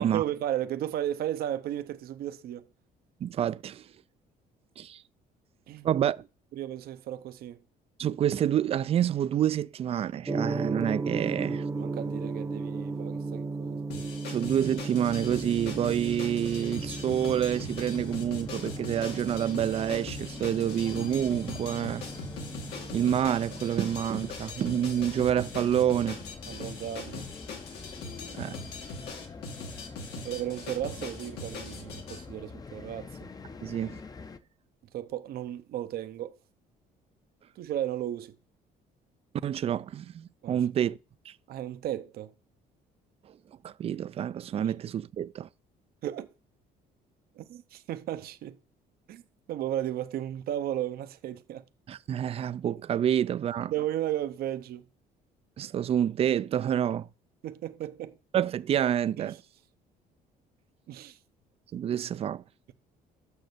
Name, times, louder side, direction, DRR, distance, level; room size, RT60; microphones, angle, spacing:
voice 1, 0.0-2.7 5.7-5.9 6.5-7.6 11.7-13.9 26.5-27.3 30.2-33.3 34.9-36.4 37.6-38.4 40.4-40.9 41.5-42.3 46.0-46.3 47.4-48.6 49.1-49.2 49.5-51.6 53.7-54.8 57.4-58.2 59.2-59.4 60.9-61.2, right 12 dB, 65° right, 0.7 m, -34 dB
voice 2, 3.2-3.8 4.8-5.0 5.8-6.3 8.0-11.6 14.3-22.0 22.9-26.2 28.3-28.6 33.6-34.0 39.4-41.0 41.3-41.4 43.6-45.5 51.9-53.7 55.6-57.1 58.3-59.4 61.7-62.4, right 10 dB, 35° right, 0.4 m, -28 dB
Gong, 10.3-24.0, right 3 dB, 20° right, 0.8 m, -36 dB
sound 1, 13.9-32.2, left 3 dB, 85° left, 2.6 m, -41 dB
sound 2, 15.1-34.4, left 4 dB, 20° left, 0.6 m, -45 dB
6.5 x 6.4 x 6.7 m
cardioid pair, 110°, 17 cm